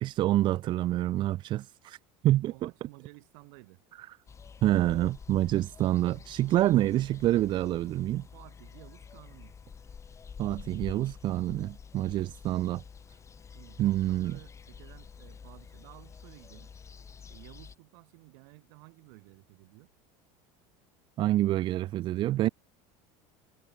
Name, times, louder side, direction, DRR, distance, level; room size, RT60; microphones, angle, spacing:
voice 1, 0.0-2.0 2.2-2.7 4.6-8.3 10.4-12.8 13.8-14.4 21.2-22.5, right 14 dB, 35° right, 0.4 m, -27 dB
voice 2, 2.3-3.8 8.3-9.5 13.5-16.7 17.3-19.9, right 37 dB, 70° right, 6.6 m, -53 dB
sound 1, 4.3-17.7, left 6 dB, 20° left, 6.5 m, -48 dB
supercardioid pair, 135°, 13 cm